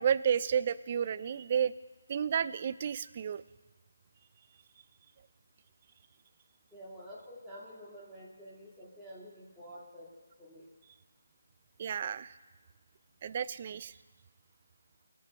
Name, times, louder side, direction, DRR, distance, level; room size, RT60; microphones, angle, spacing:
voice 1, 0.0-1.7 2.1-3.4 11.8-12.3 13.2-13.9, right 8 dB, 35° right, 17 dB, 0.3 m, -31 dB
voice 2, 6.7-10.1 10.4-10.6, equal, ahead, -11 dB, 1.9 m, -49 dB
19.0 x 6.4 x 5.2 m, 1.3 s
figure-of-eight pair, 160°, 0 cm